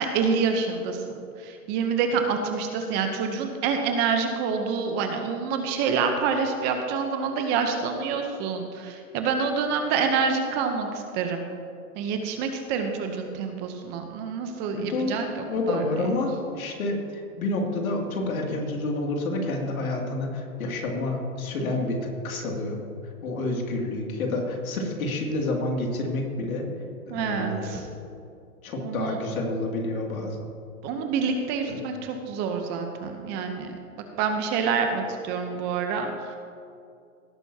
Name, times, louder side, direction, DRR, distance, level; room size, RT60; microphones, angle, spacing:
voice 1, 0.0-11.4 12.0-15.8 27.1-27.9 28.8-29.2 30.8-33.7 34.2-36.4, right 5 dB, 25° right, 5 dB, 0.7 m, -27 dB
voice 2, 14.8-22.0 22.2-22.8 23.2-26.7 27.1-27.9 28.6-30.4 31.7-31.8, left 2 dB, 70° left, 1 dB, 2.5 m, -29 dB
17.5 x 8.9 x 2.8 m, 2.5 s
hypercardioid pair, 140°, 44 cm